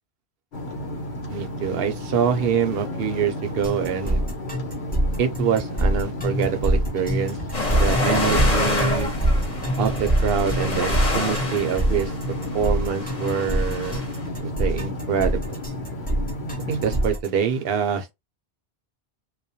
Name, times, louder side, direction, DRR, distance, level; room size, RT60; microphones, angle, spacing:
sound 1, 0.5-17.1, left 1 dB, 80° left, 1.0 m, -33 dB
voice 1, 1.3-4.2 5.2-7.4 7.7-9.1 9.8-12.1 12.5-14.0 14.4-15.4 16.7-18.1, right 7 dB, 70° right, 0.8 m, -25 dB
sound 2, 3.6-17.3, right 1 dB, 10° left, 0.5 m, -24 dB
sound 3, 7.5-14.2, left 2 dB, 40° left, 1.0 m, -27 dB
2.3 x 2.1 x 2.7 m
omnidirectional pair, 1.1 m